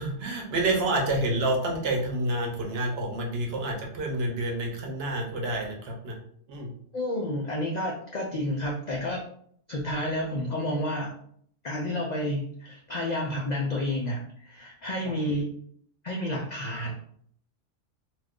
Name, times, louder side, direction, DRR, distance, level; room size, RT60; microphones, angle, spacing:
voice 1, 0.0-6.2 6.5-6.7, right 2 dB, 60° right, 1 dB, 0.8 m, -28 dB
voice 2, 6.9-9.2 9.7-11.1 11.6-15.4 16.0-16.9, left 1 dB, 70° left, -1 dB, 0.4 m, -30 dB
2.4 x 2.3 x 3.5 m, 0.64 s
omnidirectional pair, 1.3 m